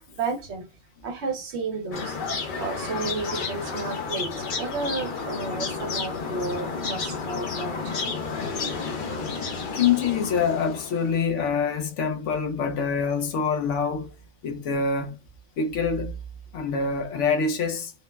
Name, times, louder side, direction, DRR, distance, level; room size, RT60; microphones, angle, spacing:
voice 1, 0.1-0.7 1.0-2.2 2.6-8.2 8.5-8.8, right 4 dB, 65° right, 0.9 m, -32 dB
sound 1, 1.9-11.2, left 4 dB, 50° left, 0.7 m, -31 dB
voice 2, 9.7-14.1 14.4-15.2 15.6-16.2 16.5-17.9, left 5 dB, 70° left, 1.0 m, -25 dB
3.1 x 2.1 x 2.2 m
omnidirectional pair, 1.3 m